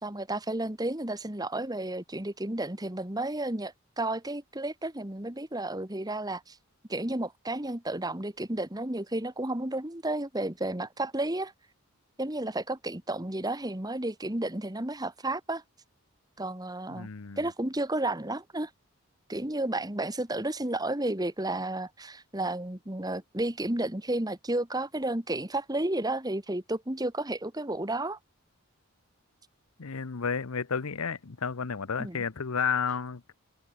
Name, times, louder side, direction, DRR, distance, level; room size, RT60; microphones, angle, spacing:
voice 1, 0.0-6.6 6.9-11.5 12.2-15.6 16.4-17.1 17.4-18.7 19.3-28.2 32.0-32.2, right 1 dB, 20° right, 1.6 m, -32 dB
voice 2, 16.9-17.4 29.8-33.3, left 6 dB, 85° left, 0.9 m, -31 dB
head